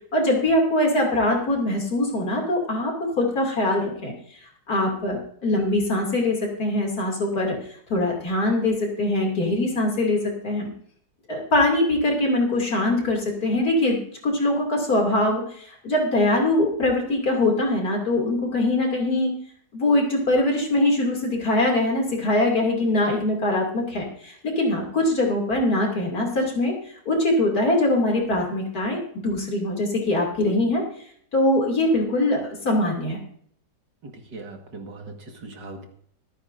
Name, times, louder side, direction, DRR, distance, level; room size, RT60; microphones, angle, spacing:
voice 1, 0.1-10.7 11.3-19.3 19.7-30.8 31.3-33.2, left 1 dB, 50° left, 0 dB, 3.2 m, -23 dB
voice 2, 34.0-35.9, right 3 dB, 70° right, 3 dB, 2.4 m, -40 dB
25.0 x 9.4 x 2.6 m, 0.63 s
omnidirectional pair, 2.0 m